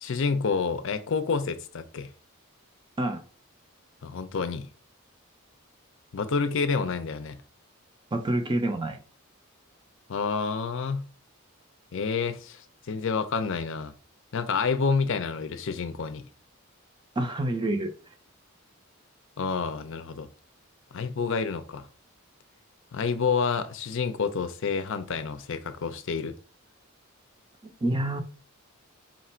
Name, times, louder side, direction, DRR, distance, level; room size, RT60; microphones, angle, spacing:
voice 1, 0.0-2.1 4.0-4.7 6.1-7.4 10.1-11.1 11.9-13.9 14.3-16.3 19.4-20.3 20.9-21.9 22.9-26.4, left 5 dB, 60° left, 0.5 m, -29 dB
voice 2, 8.1-9.0 17.2-17.9 27.6-28.2, right 1 dB, 20° right, 0.5 m, -27 dB
4.2 x 2.5 x 4.2 m
head